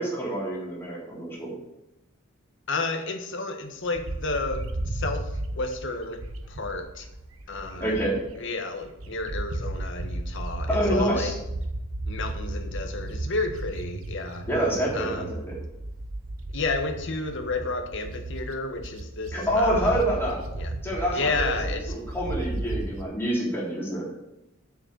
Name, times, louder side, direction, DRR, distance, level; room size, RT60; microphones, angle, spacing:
voice 1, 0.0-1.5 7.8-8.2 10.7-11.3 14.5-15.5 19.3-20.4 20.8-21.5 21.9-24.0, right 1 dB, 10° left, -5 dB, 3.5 m, -27 dB
voice 2, 2.7-6.2 6.5-7.0 7.5-7.9 8.4-11.3 12.0-14.5 14.9-15.3 16.5-20.0 20.6-20.7 21.1-21.8, left 3 dB, 65° left, 5 dB, 1.4 m, -31 dB
Bird, 4.0-8.4 8.8-23.0, right 1 dB, 80° right, 1.0 m, -34 dB
7.5 x 6.4 x 6.9 m, 0.89 s
head